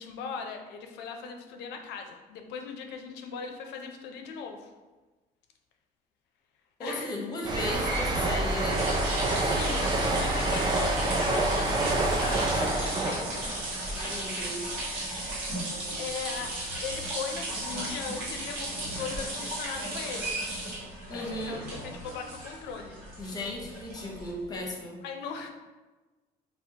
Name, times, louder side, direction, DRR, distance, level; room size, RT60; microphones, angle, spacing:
voice 1, 0.0-4.7 6.8-7.1 9.4-13.5 15.9-16.5 16.8-20.4 21.1-23.0 25.0-25.5, left 6 dB, 85° left, 4 dB, 0.5 m, -39 dB
voice 2, 6.8-8.8 13.9-14.7 21.1-21.6 23.2-25.0, left 1 dB, 25° left, 0 dB, 0.7 m, -36 dB
sound 1, 7.4-14.9 15.2-15.5, right 2 dB, 25° right, 0.5 m, -28 dB
sound 2, 7.7-24.6, right 1 dB, 85° right, 1.2 m, -36 dB
3.5 x 2.3 x 2.8 m, 1.2 s
cardioid pair, 110°, 17 cm